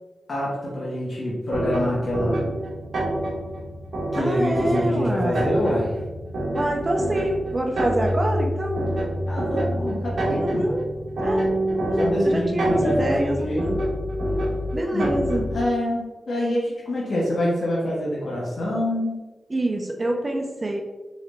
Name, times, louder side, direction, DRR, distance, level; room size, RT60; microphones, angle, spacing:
voice 1, 0.3-2.4 4.1-5.9 9.3-10.7 12.0-13.7 14.9-19.2, left 1 dB, 70° left, -6 dB, 1.1 m, -26 dB
sound 1, 1.5-15.7, right 1 dB, 80° right, 0.9 m, -27 dB
voice 2, 4.1-5.5 6.5-8.9 10.4-10.8 11.2-11.4 11.7-13.8 14.7-15.4 19.5-20.8, right 1 dB, 35° right, 1 dB, 0.8 m, -26 dB
4.1 x 3.2 x 2.5 m, 1.2 s
cardioid pair, 60°, 0 cm